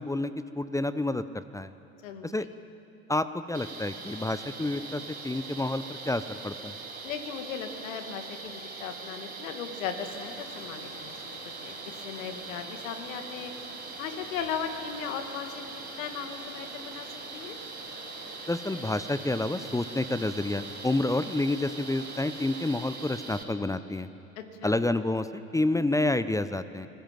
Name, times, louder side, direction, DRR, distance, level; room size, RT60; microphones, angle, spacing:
voice 1, 0.0-1.7 2.2-2.5 3.1-6.7 18.5-24.1 24.6-26.9, left 2 dB, 10° left, 13 dB, 0.8 m, -29 dB
sound 1, 3.5-23.4, right 4 dB, 20° right, 4.6 m, -42 dB
voice 2, 7.0-11.1 11.4-11.8 12.0-13.5 14.0-17.1 17.3-17.6 24.4-24.8, left 7 dB, 70° left, 7 dB, 2.3 m, -37 dB
sound 2, 10.0-22.9, left 4 dB, 35° left, 3.0 m, -51 dB
25.0 x 21.0 x 7.7 m, 2.8 s
hypercardioid pair, 75°, 42 cm